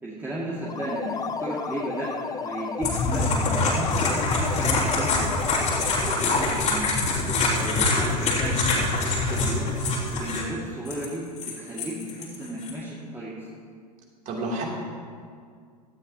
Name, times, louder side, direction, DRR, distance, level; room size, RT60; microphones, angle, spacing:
voice 1, 0.0-2.1 2.4-4.0 4.3-5.3 6.2-7.0 7.5-9.7 10.1-11.2 11.6-13.4, right 1 dB, 10° right, -7 dB, 2.4 m, -34 dB
sound 1, 0.6-6.3, left 6 dB, 15° left, 0.5 m, -33 dB
sound 2, 2.8-10.4 10.9-12.7, left 3 dB, 35° left, 3.6 m, -25 dB
voice 2, 5.7-6.1 14.2-14.7, right 2 dB, 40° right, -1 dB, 3.2 m, -32 dB
17.0 x 13.0 x 3.0 m, 2.1 s
figure-of-eight pair, 90°, 21 cm